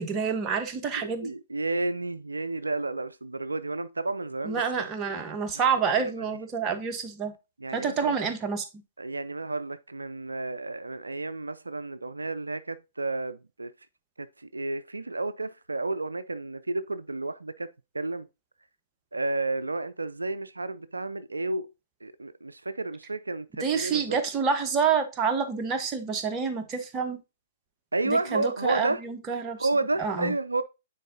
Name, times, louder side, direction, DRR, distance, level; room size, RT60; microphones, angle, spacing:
voice 1, 0.0-1.3 4.4-7.3 7.7-8.7 23.6-27.2 28.0-29.7 30.0-30.3, right 6 dB, 25° right, 1.0 m, -28 dB
voice 2, 1.0-4.8 6.0-6.1 7.6-8.2 9.0-13.7 14.2-17.7 17.9-18.3 19.1-21.7 22.0-24.2 27.9-29.0 29.6-30.6, right 2 dB, 80° right, 0.3 m, -31 dB
9.0 x 4.4 x 2.6 m
figure-of-eight pair, 115°, 0 cm